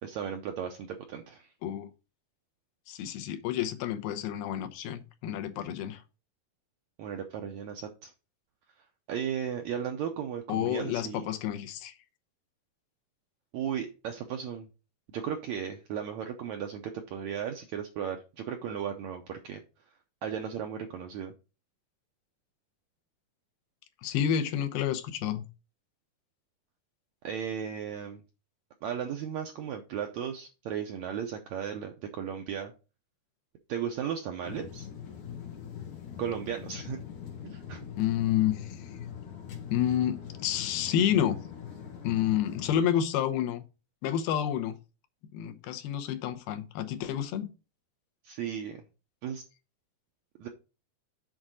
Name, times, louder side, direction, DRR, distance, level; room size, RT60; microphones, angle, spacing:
voice 1, 0.0-1.5 7.0-8.1 9.1-11.3 13.5-14.7 15.1-19.6 20.2-21.3 27.2-28.2 28.8-32.7 33.7-34.9 36.2-37.0 37.4-37.8 48.2-48.8 49.2-49.4 50.4-50.5, right 8 dB, 85° right, 1.6 m, -35 dB
voice 2, 2.9-6.0 10.5-11.9 24.0-25.4 38.0-38.9 39.7-41.4 42.0-43.7 44.0-44.8 45.3-47.5, left 10 dB, 85° left, 2.8 m, -29 dB
sound 1, 34.4-42.7, left 8 dB, 60° left, 2.8 m, -42 dB
7.8 x 3.8 x 6.1 m
omnidirectional pair, 4.3 m